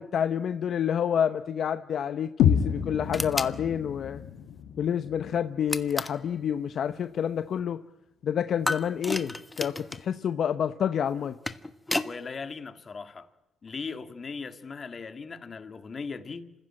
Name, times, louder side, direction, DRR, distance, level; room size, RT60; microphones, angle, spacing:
voice 1, 0.0-4.2 4.8-7.8 8.2-11.4, left 8 dB, 60° left, 0.8 m, -28 dB
sound 1, 2.4-6.4, left 8 dB, 85° left, 1.5 m, -29 dB
sound 2, 3.1-3.6 5.7-6.2 8.7-10.1 11.2-12.1, left 2 dB, 15° left, 1.2 m, -32 dB
voice 2, 12.0-13.3 13.6-16.5, left 5 dB, 40° left, 2.0 m, -38 dB
27.0 x 15.5 x 8.8 m
cardioid pair, 90°, 0 cm